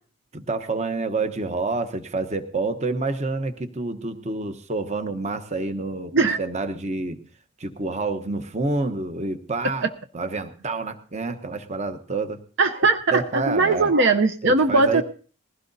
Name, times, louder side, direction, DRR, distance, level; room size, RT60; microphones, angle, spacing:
voice 1, 0.3-6.1 6.4-7.2 7.6-9.9 10.1-12.4 13.1-13.9 14.4-15.0, right 3 dB, 30° right, 9 dB, 0.9 m, -28 dB
voice 2, 12.6-15.0, right 3 dB, 55° right, 6 dB, 0.7 m, -20 dB
20.5 x 16.0 x 2.7 m, 0.40 s
head